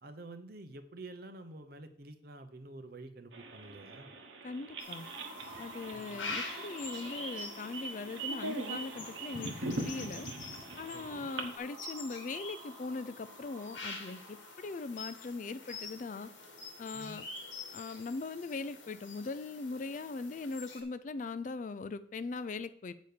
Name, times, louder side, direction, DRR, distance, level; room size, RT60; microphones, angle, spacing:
voice 1, 0.0-4.1 5.9-6.1 10.9-11.3 16.9-17.2, right 2 dB, 50° right, 9 dB, 0.8 m, -49 dB
sound 1, 3.3-11.6, right 2 dB, 75° right, 1.1 m, -42 dB
voice 2, 4.4-5.1 5.6-10.3 10.8-16.3 16.8-17.2 17.7-22.9, left 3 dB, 40° left, 13 dB, 0.3 m, -40 dB
sound 2, 4.5-15.4, right 1 dB, 25° right, 1.8 m, -52 dB
sound 3, 4.8-20.8, left 3 dB, 80° left, 1.8 m, -46 dB
8.1 x 4.2 x 6.7 m, 0.65 s
head